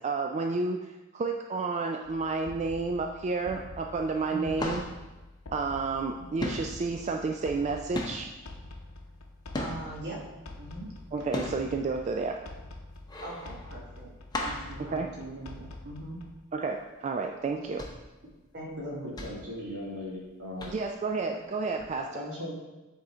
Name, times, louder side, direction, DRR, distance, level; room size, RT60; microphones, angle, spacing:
voice 1, 0.0-4.8 5.5-8.3 11.1-12.4 14.9-15.1 16.5-17.9 20.7-22.2, right 4 dB, 35° right, 3 dB, 0.3 m, -31 dB
sound 1, 2.0-16.4, left 2 dB, 80° left, 0.7 m, -46 dB
sound 2, 3.5-3.9 4.2-6.1 6.4-10.1 10.6-15.9 16.2-16.3 16.7-16.9 17.4-20.2 20.6-21.1 21.8-21.9, left 1 dB, 20° left, 0.8 m, -37 dB
voice 2, 4.3-4.7 9.6-10.2 10.6-10.9 13.2-14.1 14.4-16.2 18.5-19.1, right 1 dB, 55° right, -2 dB, 1.2 m, -40 dB
voice 3, 18.8-20.8 21.3-21.4 22.0-22.5, left 1 dB, 80° right, -4 dB, 2.0 m, -38 dB
7.6 x 3.7 x 4.3 m, 1.1 s
head